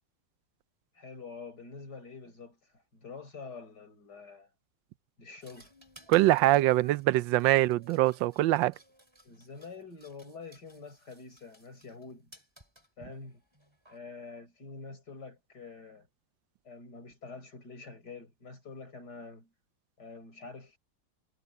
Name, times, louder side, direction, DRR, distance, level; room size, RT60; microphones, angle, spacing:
voice 1, 0.9-2.6 2.9-4.5 5.2-5.7 9.2-12.3 13.0-13.4 13.9-16.1 16.6-19.5 20.0-20.8, left 4 dB, 60° left, 6.1 m, -46 dB
sound 1, 5.4-12.0 12.3-14.0, equal, 15° right, 7.9 m, -59 dB
voice 2, 6.1-8.7, right 16 dB, 90° right, 1.3 m, -23 dB
omnidirectional pair, 2.0 m